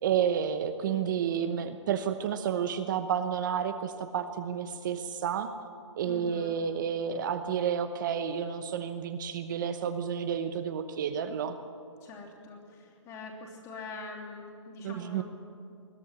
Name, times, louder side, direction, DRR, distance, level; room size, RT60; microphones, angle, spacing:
voice 1, 0.0-5.5 5.9-11.6 14.8-15.2, right 8 dB, 40° right, 9 dB, 0.9 m, -30 dB
voice 2, 0.9-1.4 6.0-6.6 12.0-15.2, left 3 dB, 20° left, -1 dB, 3.0 m, -44 dB
21.0 x 13.0 x 9.7 m, 2.7 s
hypercardioid pair, 150°, 16 cm